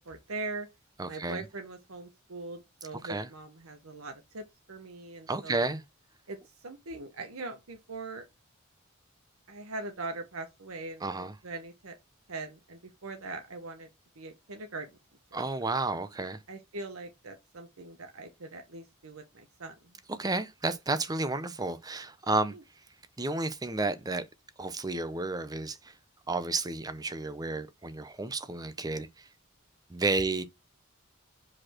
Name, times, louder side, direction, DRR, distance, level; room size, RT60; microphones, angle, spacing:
voice 1, 0.1-0.7 1.1-5.6 6.3-6.4 6.6-8.2 9.5-12.0 12.3-13.9 14.2-14.9 15.3-15.7 16.5-19.7 22.5-22.6, right 3 dB, 85° right, 1.1 m, -41 dB
voice 2, 1.0-1.4 3.0-3.3 5.3-5.8 11.0-11.3 15.3-16.4 20.1-22.5 23.2-24.2 24.6-25.9 26.3-29.3 29.9-30.4, right 3 dB, 20° right, 0.6 m, -31 dB
5.2 x 4.3 x 4.4 m
head